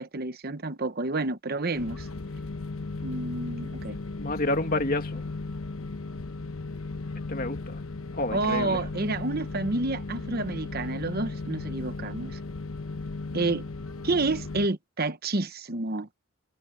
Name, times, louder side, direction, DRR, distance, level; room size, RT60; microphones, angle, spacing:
voice 1, 0.0-2.1 3.0-4.0 8.3-12.4 13.3-13.6 14.0-16.1, right 2 dB, 45° right, 1.0 m, -29 dB
sound 1, 1.7-14.7, left 3 dB, 75° left, 1.0 m, -36 dB
voice 2, 4.2-5.2 7.3-7.8 8.2-8.8, left 2 dB, 40° left, 2.5 m, -29 dB
head